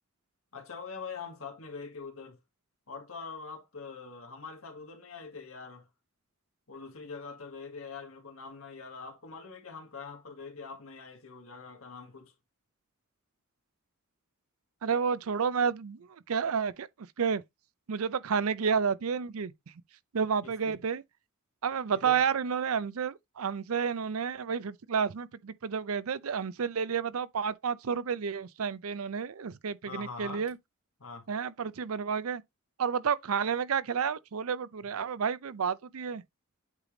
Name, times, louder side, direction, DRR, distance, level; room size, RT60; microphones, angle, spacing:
voice 1, 0.5-2.4 2.9-5.9 6.7-12.3 20.4-20.8 21.9-22.2 29.9-30.4 31.0-31.3, left 5 dB, 70° left, 1.8 m, -44 dB
voice 2, 14.8-16.9 17.2-17.4 17.9-19.5 20.1-21.0 21.6-30.6 31.3-32.4 32.8-36.2, right 6 dB, 80° right, 0.5 m, -30 dB
8.2 x 3.3 x 3.8 m
head